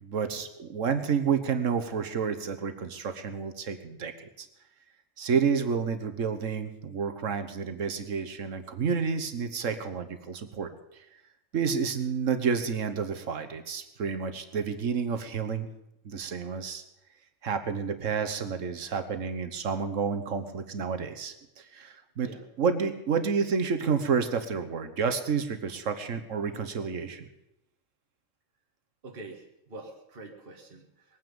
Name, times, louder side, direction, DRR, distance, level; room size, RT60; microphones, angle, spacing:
voice 1, 0.0-4.5 5.2-10.7 11.5-15.7 16.0-16.8 17.4-22.3 22.6-27.3, right 6 dB, 85° right, 8 dB, 1.5 m, -30 dB
voice 2, 29.0-31.2, right 2 dB, 50° right, 1 dB, 1.8 m, -45 dB
20.5 x 9.5 x 7.0 m, 0.85 s
omnidirectional pair, 1.3 m